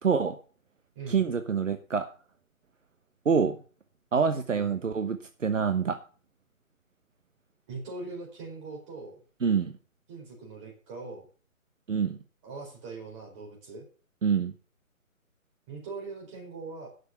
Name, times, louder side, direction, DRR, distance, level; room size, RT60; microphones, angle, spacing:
voice 1, 0.0-0.3 1.1-2.1 3.2-3.6 4.1-6.0 9.4-9.7 11.9-12.2 14.2-14.5, right 6 dB, 60° right, 7 dB, 1.2 m, -26 dB
voice 2, 7.7-9.2 10.1-11.2 12.4-13.8 15.7-16.9, right 3 dB, 20° right, -1 dB, 4.5 m, -41 dB
11.0 x 6.7 x 7.0 m, 0.39 s
figure-of-eight pair, 145°, 41 cm